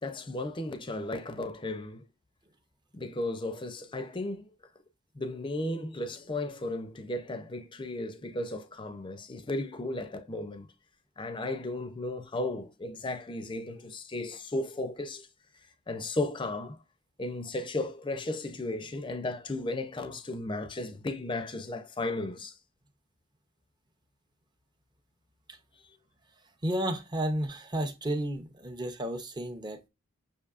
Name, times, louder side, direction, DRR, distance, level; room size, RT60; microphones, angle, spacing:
voice 1, 0.0-2.0 2.9-4.5 5.1-10.7 11.2-15.3 15.9-16.8 17.2-22.5, left 2 dB, 25° left, 0.5 m, -35 dB
voice 2, 26.6-29.9, right 1 dB, 20° right, 0.6 m, -32 dB
6.6 x 2.7 x 2.4 m
head